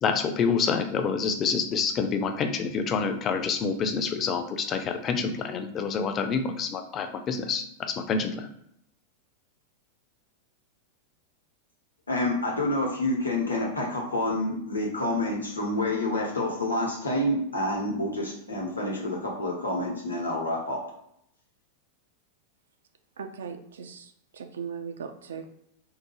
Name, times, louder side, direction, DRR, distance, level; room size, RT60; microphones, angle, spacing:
voice 1, 0.0-8.5, left 5 dB, 30° left, 7 dB, 0.4 m, -27 dB
voice 2, 12.1-20.8, left 1 dB, 75° left, -2 dB, 0.8 m, -28 dB
voice 3, 23.2-25.5, right 6 dB, 65° right, 7 dB, 0.3 m, -39 dB
3.6 x 2.1 x 3.1 m, 0.73 s
figure-of-eight pair, 90°, 0 cm